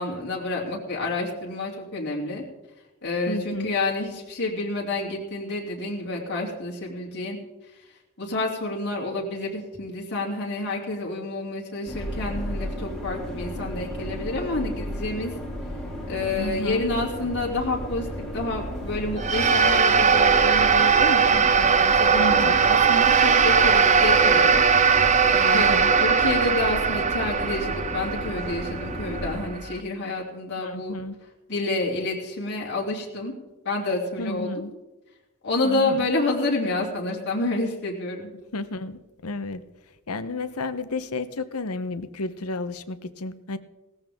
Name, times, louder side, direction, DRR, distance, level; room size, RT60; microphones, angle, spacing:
voice 1, 0.0-2.4 3.0-7.4 8.2-15.3 16.1-18.1 18.3-24.6 25.3-30.9 31.5-33.3 33.6-34.6 35.4-38.3, left 2 dB, 50° left, -3 dB, 3.2 m, -29 dB
voice 2, 3.3-3.7 16.3-16.9 22.1-22.8 25.4-25.9 30.6-31.2 34.2-34.7 35.6-36.1 38.5-39.7 40.1-43.6, left 2 dB, 80° left, 12 dB, 0.9 m, -32 dB
sound 1, 11.9-29.4, equal, 5° left, 3.8 m, -34 dB
sound 2, 19.2-29.7, right 6 dB, 35° right, 0.8 m, -20 dB
18.0 x 14.5 x 3.7 m, 1.1 s
head